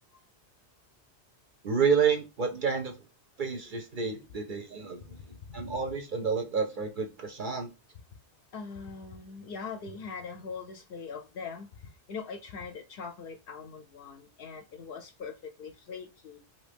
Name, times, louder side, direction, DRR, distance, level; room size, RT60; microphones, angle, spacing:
voice 1, 1.6-3.0 3.4-5.2 5.5-7.7, right 5 dB, 55° right, 0.6 m, -29 dB
voice 2, 8.5-16.4, left 5 dB, 60° left, 0.6 m, -42 dB
2.8 x 2.7 x 3.3 m
omnidirectional pair, 1.2 m